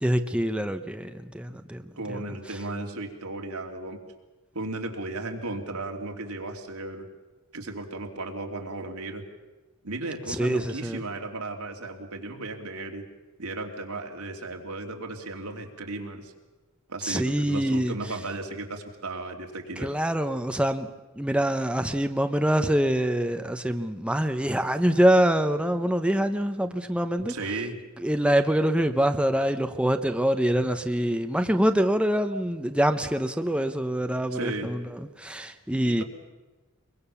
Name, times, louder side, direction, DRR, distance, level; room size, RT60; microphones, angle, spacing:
voice 1, 0.0-2.2 10.3-11.0 17.0-17.9 19.8-20.9 21.2-27.3 28.0-36.0, equal, 5° right, 8 dB, 0.8 m, -25 dB
voice 2, 2.0-4.0 4.5-7.1 7.5-9.2 9.8-13.0 13.4-16.3 16.9-19.9 27.3-27.8 34.3-34.7 35.8-36.0, right 2 dB, 85° right, 2 dB, 3.0 m, -35 dB
23.0 x 23.0 x 7.1 m, 1.2 s
head